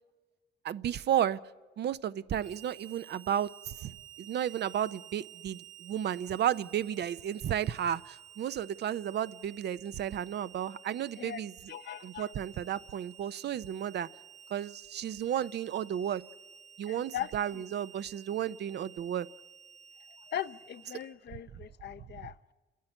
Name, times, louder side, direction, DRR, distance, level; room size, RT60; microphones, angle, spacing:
voice 1, 0.6-1.4 1.8-3.9 4.2-11.5 12.0-14.1 14.5-16.2 16.8-19.3, right 10 dB, 60° right, 16 dB, 0.6 m, -33 dB
Harmonica, 2.4-21.1, right 10 dB, 75° right, 1.6 m, -53 dB
voice 2, 11.7-12.3 16.9-17.6 20.3-22.5, left 11 dB, 60° left, 13 dB, 0.6 m, -40 dB
29.5 x 10.5 x 9.9 m, 1.3 s
cardioid pair, 90°, 20 cm